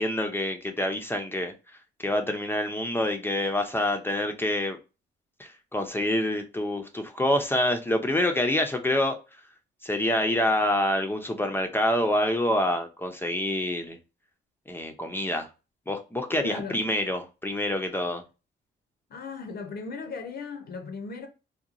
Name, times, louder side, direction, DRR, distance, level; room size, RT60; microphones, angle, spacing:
voice 1, 0.0-1.5 2.0-4.8 5.4-9.2 9.8-14.0 14.7-15.5 15.9-18.2, left 1 dB, 10° left, 0.5 m, -26 dB
voice 2, 16.4-16.8 19.1-21.3, left 4 dB, 55° left, 0.6 m, -37 dB
2.8 x 2.2 x 2.4 m
cardioid pair, 90°, 20 cm